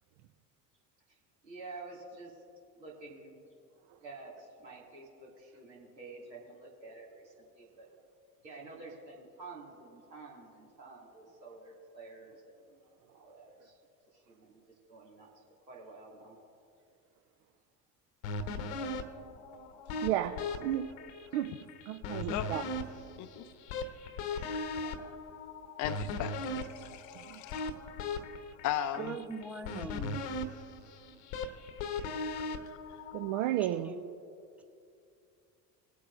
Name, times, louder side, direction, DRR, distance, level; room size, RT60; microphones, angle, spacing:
voice 1, 1.4-2.4 2.8-3.5 4.0-7.9 8.4-12.8 13.1-13.8 14.1-14.6 14.9-15.3 15.7-16.4, right 3 dB, 80° right, -4 dB, 2.5 m, -49 dB
sound 1, 18.2-33.5, left 3 dB, 55° left, 1.0 m, -39 dB
voice 2, 20.0-20.3 20.6-20.8 21.3-21.5 21.9-22.6 27.1-27.4 33.1-33.9, right 13 dB, 50° right, 8 dB, 0.6 m, -32 dB
voice 3, 24.3-25.1 25.8-27.7 28.6-29.1, left 10 dB, 35° left, 12 dB, 0.6 m, -38 dB
voice 4, 28.9-30.2 33.7-34.0, right 3 dB, 5° right, 4 dB, 0.9 m, -41 dB
21.5 x 8.5 x 2.6 m, 2.5 s
figure-of-eight pair, 65°, 50 cm